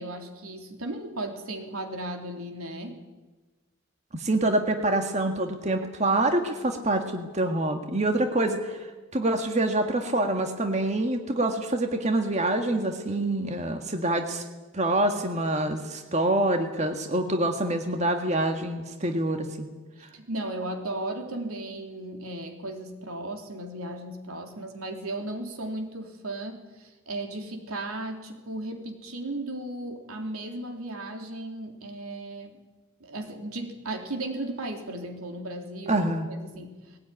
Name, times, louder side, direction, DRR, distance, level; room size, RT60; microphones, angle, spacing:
voice 1, 0.0-3.0 20.0-32.6 33.0-37.0, right 1 dB, 90° right, 4 dB, 3.4 m, -36 dB
voice 2, 4.1-14.4 14.7-19.7 35.9-36.3, right 1 dB, 30° right, 5 dB, 1.8 m, -26 dB
20.0 x 18.0 x 9.9 m, 1.2 s
head